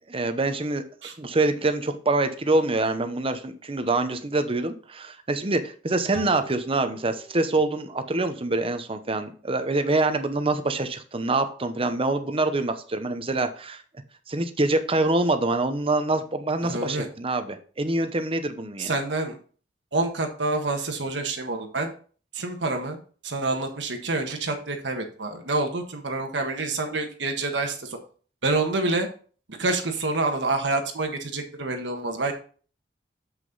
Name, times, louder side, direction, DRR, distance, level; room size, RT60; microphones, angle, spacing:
voice 1, 0.1-0.8 1.2-13.8 14.3-18.9, right 2 dB, 30° right, 9 dB, 0.8 m, -25 dB
sound 1, 6.1-9.5, right 2 dB, ahead, 3.0 m, -46 dB
voice 2, 16.6-17.1 18.8-19.4 19.9-21.9 22.3-23.0 23.2-28.0 28.4-29.1 29.5-32.3, right 2 dB, 75° right, 4 dB, 1.4 m, -27 dB
7.6 x 6.2 x 4.0 m, 0.42 s
head